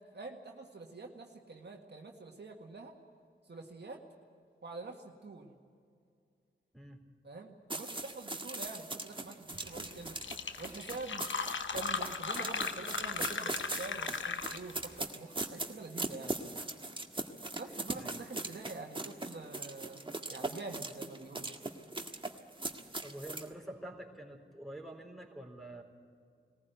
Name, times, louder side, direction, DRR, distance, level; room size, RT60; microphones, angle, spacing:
voice 1, 0.0-3.0 3.4-4.0 4.6-5.6 7.2-10.2 10.6-11.3 11.7-16.4 17.6-21.5, right 3 dB, 55° right, 2 dB, 1.9 m, -46 dB
sound 1, 7.7-23.5, right 2 dB, 25° right, 1.7 m, -40 dB
Fill (with liquid), 9.8-9.9 10.1-14.8, left 5 dB, 70° left, 1.0 m, -37 dB
voice 2, 23.0-25.8, right 1 dB, ahead, 3 dB, 4.0 m, -47 dB
20.5 x 15.0 x 9.3 m, 2.3 s
cardioid pair, 50°, 20 cm